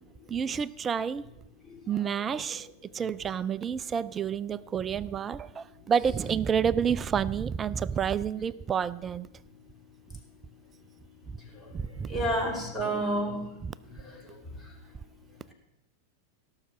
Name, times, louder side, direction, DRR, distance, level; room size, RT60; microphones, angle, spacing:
voice 1, 0.3-1.2 1.9-2.7 2.9-9.3 11.7-12.1 13.6-13.7, right 7 dB, 20° right, 20 dB, 0.3 m, -29 dB
voice 2, 12.1-13.5, right 1 dB, 5° left, 0 dB, 3.1 m, -29 dB
17.0 x 6.5 x 7.7 m, 0.95 s
figure-of-eight pair, 90°, 0 cm